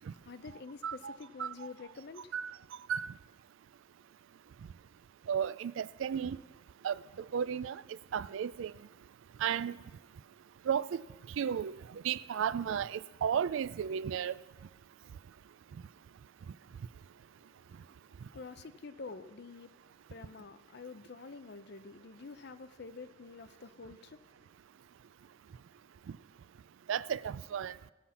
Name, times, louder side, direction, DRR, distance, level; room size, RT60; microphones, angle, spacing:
voice 1, 0.0-2.3 17.3-24.5, left 4 dB, 50° left, 0.5 m, -48 dB
voice 2, 0.8-1.7 2.3-2.6 2.9-3.1 5.3-6.4 6.8-7.8 8.1-8.7 9.4-9.8 10.7-11.0 11.4-14.3 26.9-27.8, right 8 dB, 65° right, 0.3 m, -34 dB
16.5 x 5.8 x 7.1 m
head